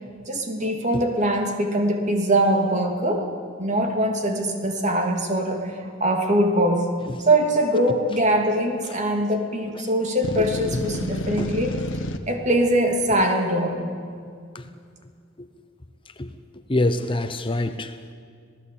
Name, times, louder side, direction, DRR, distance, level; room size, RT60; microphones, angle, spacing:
voice 1, 0.3-3.3 3.6-6.9 7.2-11.8 12.3-13.8, right 1 dB, 35° right, 3 dB, 2.8 m, -22 dB
sound 1, 10.2-12.2, left 1 dB, 70° left, 1.5 m, -30 dB
voice 2, 10.7-11.0 11.4-11.5 14.5-14.7 15.4-15.5 16.2-16.3 16.7-18.1, left 1 dB, 25° left, 9 dB, 0.8 m, -26 dB
26.5 x 17.0 x 8.7 m, 2.2 s
head